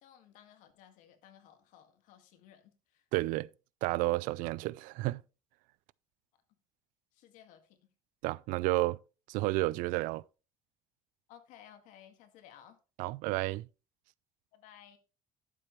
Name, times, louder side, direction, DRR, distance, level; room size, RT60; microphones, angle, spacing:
voice 1, 0.0-3.0 7.1-7.8 11.3-12.8 14.5-15.0, left 10 dB, 80° left, 2.0 m, -57 dB
voice 2, 3.1-3.5 3.8-5.2 8.2-9.0 9.3-10.2 13.0-13.7, right 19 dB, 85° right, 0.4 m, -31 dB
12.0 x 7.5 x 3.1 m
cardioid pair, 145°, 13 cm